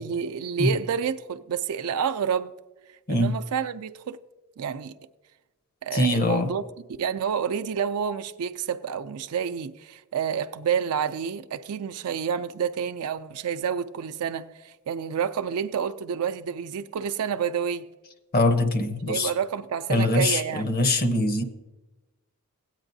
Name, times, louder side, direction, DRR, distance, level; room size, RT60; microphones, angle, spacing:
voice 1, 0.0-2.5 3.1-4.2 4.6-4.9 5.8-6.6 7.0-17.9 19.1-20.8, right 7 dB, 75° right, 0.4 m, -29 dB
voice 2, 5.9-6.5 18.3-19.3 19.9-21.4, left 2 dB, 45° left, 0.7 m, -23 dB
16.5 x 8.9 x 2.6 m
head